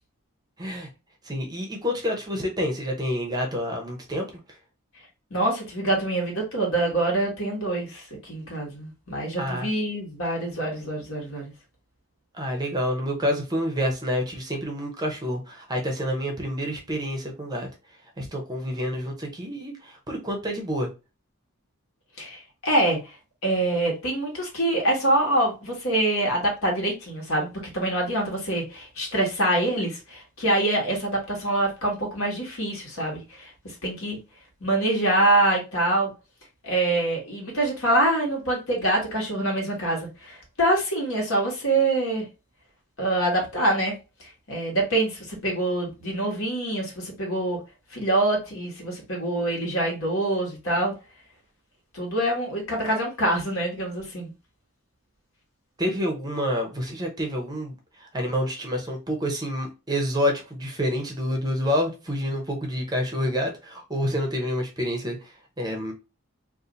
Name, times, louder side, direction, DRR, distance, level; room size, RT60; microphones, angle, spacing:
voice 1, 0.6-0.9 1.2-4.3 9.4-9.7 12.3-17.7 18.2-20.9 55.8-65.9, equal, 20° right, 0.6 m, -28 dB
voice 2, 5.3-11.5 22.2-23.1 23.4-27.5 27.7-34.2 34.6-36.1 36.6-42.3 43.0-43.9 44.2-47.6 47.9-50.9 51.9-54.3, right 1 dB, 65° left, 1.3 m, -25 dB
2.6 x 2.4 x 3.8 m
head